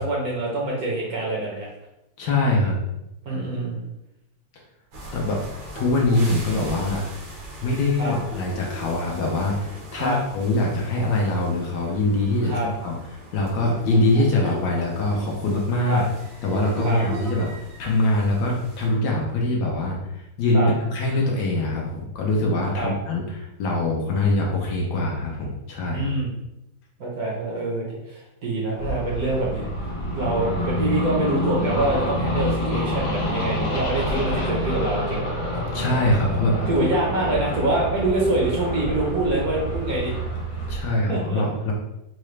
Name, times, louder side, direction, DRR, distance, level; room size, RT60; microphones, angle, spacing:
voice 1, 0.0-1.7 3.3-3.8 8.0-8.1 9.9-10.2 12.5-12.7 15.9-16.0 16.8-17.0 20.5-20.7 22.7-22.9 25.9-26.3 27.0-29.7 30.1-35.3 36.7-40.1 41.1-41.4, right 2 dB, 60° right, -3 dB, 1.1 m, -25 dB
voice 2, 2.2-2.8 5.1-5.4 5.7-7.0 7.6-12.5 12.8-13.0 13.3-16.0 16.4-26.1 35.7-36.7 40.7-41.7, left 2 dB, 65° left, -2 dB, 1.2 m, -23 dB
sound 1, 4.9-18.9, right 1 dB, 80° right, 1.7 m, -39 dB
sound 2, 28.8-40.8, equal, 90° left, 1.6 m, -27 dB
4.7 x 2.1 x 3.1 m, 0.89 s
omnidirectional pair, 2.1 m